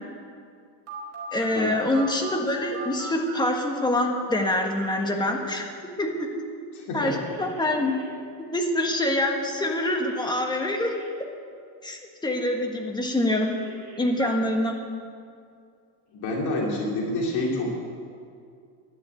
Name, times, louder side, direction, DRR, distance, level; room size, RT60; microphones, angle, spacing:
Telephone, 0.9-3.4 4.4-5.1 7.0-8.0 10.0-11.1 13.1-14.3, right 4 dB, 35° right, 5.1 m, -41 dB
voice 1, 1.3-5.6 6.0-6.3 6.9-7.9 8.5-11.0 11.8-13.6 14.0-14.8, left 1 dB, 10° left, 2 dB, 1.5 m, -25 dB
voice 2, 6.7-7.2 16.1-17.8, left 1 dB, 55° left, -1 dB, 2.7 m, -28 dB
11.5 x 11.0 x 9.4 m, 2.3 s
cardioid pair, 155°, 46 cm